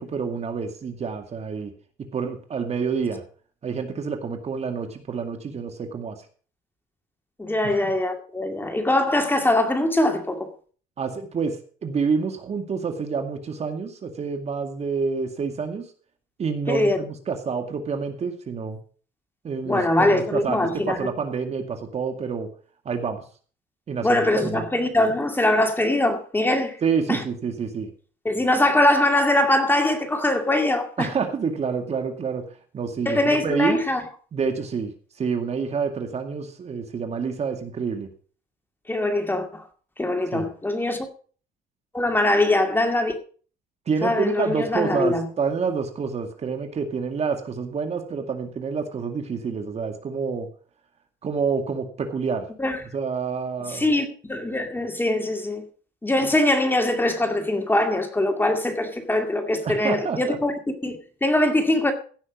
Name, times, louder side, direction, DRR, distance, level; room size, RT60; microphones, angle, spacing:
voice 1, 0.0-1.7 2.1-3.2 3.6-6.2 7.8-7.9 11.0-15.8 16.4-18.8 19.4-22.5 22.9-23.2 23.9-24.6 26.8-27.9 31.0-32.4 32.7-33.8 34.3-34.9 35.2-38.1 40.3-40.5 43.9-50.5 51.2-52.4 52.8-53.8 59.6-60.4, right 5 dB, 40° right, 2.2 m, -28 dB
voice 2, 7.4-10.5 16.7-17.0 19.6-21.1 24.0-26.8 27.1-27.2 28.2-31.1 33.1-34.0 38.9-39.6 40.0-41.1 41.9-43.2 44.0-45.3 52.6-52.8 53.7-55.6 56.0-60.5 60.8-61.9, left 1 dB, 10° left, 2.3 m, -22 dB
16.0 x 6.4 x 6.0 m
cardioid pair, 110°, 17 cm